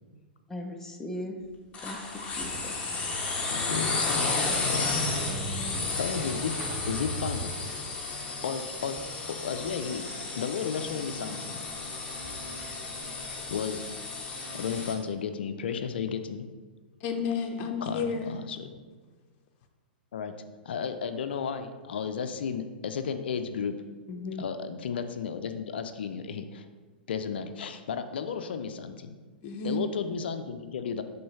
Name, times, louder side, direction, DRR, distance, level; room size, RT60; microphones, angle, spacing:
voice 1, 0.5-1.4 1.8-2.0 2.3-2.9 4.2-4.3 5.3-6.0, left 1 dB, 5° left, 2 dB, 0.7 m, -39 dB
sound 1, 1.7-14.9, left 3 dB, 25° left, 1.4 m, -33 dB
Motorcycle / Engine starting, 2.2-8.0, right 2 dB, 40° right, 1.0 m, -40 dB
voice 2, 3.5-4.9 5.7-6.5 6.9-7.8 8.4-9.0 9.4-11.6 13.2-13.9 14.5-16.5 17.8-18.7 20.1-20.3 20.7-23.8 24.4-26.7 27.1-29.1 29.6-31.0, left 6 dB, 70° left, 9 dB, 0.5 m, -33 dB
voice 3, 17.0-18.4 24.1-24.4 29.4-29.9, left 5 dB, 40° left, 4 dB, 0.9 m, -31 dB
5.4 x 3.9 x 5.5 m, 1.4 s
hypercardioid pair, 115°, 6 cm